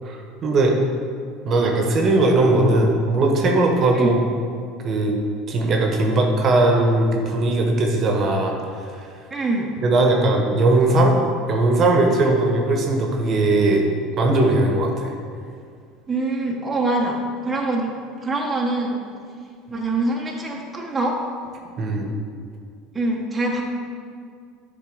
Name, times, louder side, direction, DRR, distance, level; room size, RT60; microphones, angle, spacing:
voice 1, 0.0-0.8 1.4-4.2 4.8-5.2 5.5-9.1 9.8-11.1 11.5-13.9 14.2-15.1 21.8-22.2, right 2 dB, 40° right, 2 dB, 1.1 m, -19 dB
voice 2, 9.3-9.7 16.1-17.2 17.4-17.9 18.2-19.0 19.7-21.2 22.9-23.6, right 2 dB, 15° right, -2 dB, 1.0 m, -24 dB
9.6 x 3.9 x 3.9 m, 2.2 s
supercardioid pair, 100°, 0 cm